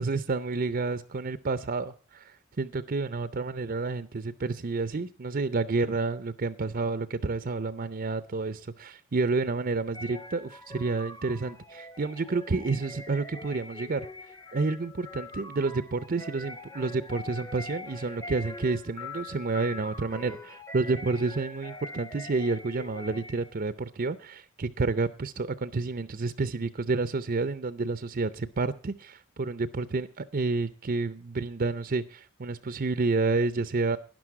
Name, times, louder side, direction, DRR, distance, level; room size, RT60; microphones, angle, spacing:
voice 1, 0.0-14.1 14.5-34.0, right 3 dB, 40° right, 14 dB, 0.5 m, -30 dB
sound 1, 9.9-23.6, left 2 dB, 15° left, 0.7 m, -43 dB
12.5 x 10.5 x 4.7 m, 0.38 s
head